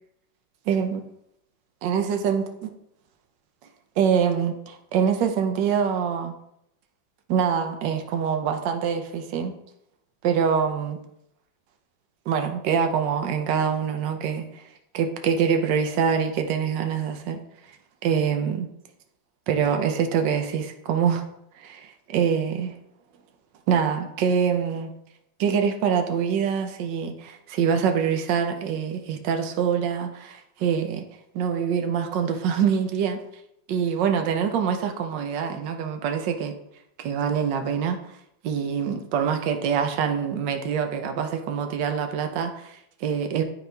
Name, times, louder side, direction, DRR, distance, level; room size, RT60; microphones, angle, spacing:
voice 1, 0.7-1.1 1.8-2.7 4.0-6.3 7.3-9.6 10.2-11.0 12.3-14.6 14.9-17.4 18.0-18.7 19.5-21.2 21.5-22.8 23.7-24.9 25.4-31.0 31.3-33.2 33.7-36.6 37.0-38.1 38.4-43.4, right 7 dB, 75° right, 5 dB, 1.4 m, -25 dB
10.5 x 4.2 x 3.4 m, 0.78 s
omnidirectional pair, 2.0 m